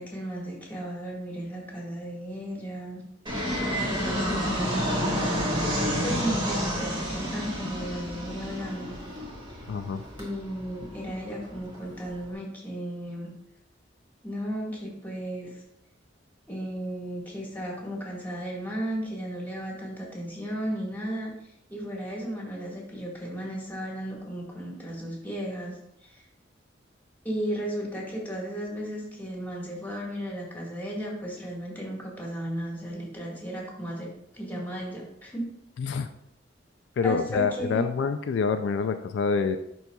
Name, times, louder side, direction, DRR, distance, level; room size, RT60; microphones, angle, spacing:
voice 1, 0.0-3.0 3.9-5.3 6.0-8.9 9.5-9.6 10.2-13.3 14.2-15.6 16.5-21.3 21.7-26.2 27.2-35.5 37.0-37.9, right 1 dB, 10° left, -3 dB, 1.6 m, -35 dB
Fixed-wing aircraft airplane, 3.3-12.3, equal, 25° right, 1.5 m, -30 dB
voice 2, 5.9-6.2 9.7-10.0 35.8-36.1 37.0-39.6, left 5 dB, 65° left, 8 dB, 0.3 m, -27 dB
10.5 x 4.1 x 2.3 m, 0.80 s
head